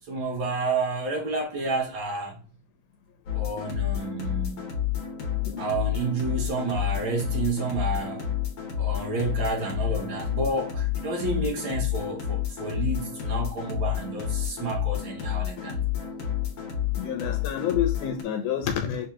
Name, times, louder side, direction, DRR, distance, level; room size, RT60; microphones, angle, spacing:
voice 1, 0.1-2.4 3.3-4.7 5.6-8.3 8.8-15.8, right 3 dB, 60° right, 1.3 m, -30 dB
sound 1, 3.3-18.2, left 10 dB, 65° left, 1.9 m, -30 dB
voice 2, 17.0-19.1, left 9 dB, 85° left, 2.1 m, -28 dB
6.7 x 2.8 x 2.3 m
omnidirectional pair, 3.6 m